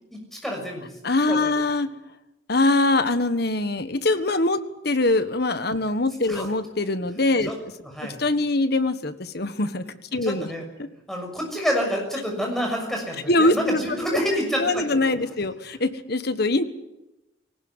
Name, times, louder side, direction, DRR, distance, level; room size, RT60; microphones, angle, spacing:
voice 1, 0.1-0.9 1.3-1.5 6.3-6.5 7.5-7.6 7.9-8.2 10.2-10.6 11.1-15.1, equal, ahead, 1 dB, 6.4 m, -28 dB
voice 2, 1.0-1.9 2.5-7.5 8.0-10.5 10.8-10.9 13.3-13.8 14.6-16.6, left 2 dB, 50° left, 11 dB, 1.4 m, -23 dB
19.5 x 19.0 x 9.7 m, 0.92 s
head